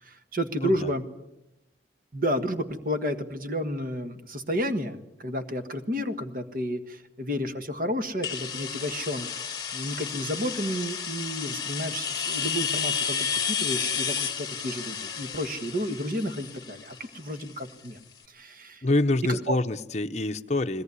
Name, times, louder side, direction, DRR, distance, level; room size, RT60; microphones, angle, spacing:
voice 1, 0.0-1.0 2.1-9.3 9.7-18.0 18.3-18.8 19.5-19.6, equal, 50° right, 7 dB, 1.6 m, -31 dB
sound 1, 8.2-17.9, left 7 dB, 20° left, 1.6 m, -32 dB
voice 2, 18.8-20.8, left 2 dB, 35° left, 8 dB, 0.7 m, -26 dB
21.0 x 17.5 x 9.7 m, 0.93 s
head